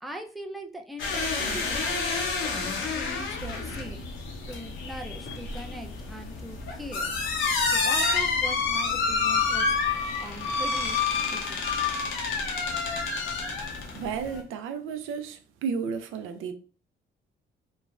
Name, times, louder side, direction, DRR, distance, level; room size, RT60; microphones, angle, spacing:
voice 1, 0.0-4.0 4.5-7.2 7.7-9.7 10.2-11.7, right 1 dB, ahead, 0.4 m, -41 dB
sound 1, 1.0-14.4, left 4 dB, 80° left, 0.7 m, -28 dB
voice 2, 13.9-16.5, right 6 dB, 85° right, 0.4 m, -33 dB
3.1 x 2.1 x 2.3 m
cardioid pair, 90°, 20 cm